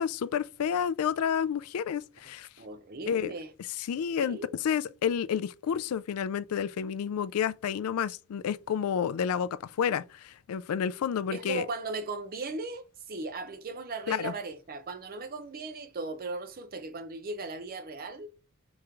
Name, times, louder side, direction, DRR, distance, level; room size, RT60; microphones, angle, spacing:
voice 1, 0.0-2.5 3.1-3.3 3.8-11.6 14.1-14.3, left 8 dB, 75° left, 0.3 m, -30 dB
voice 2, 2.6-3.5 4.2-4.6 11.3-18.3, right 3 dB, 45° right, 0.5 m, -37 dB
3.6 x 3.0 x 4.4 m
head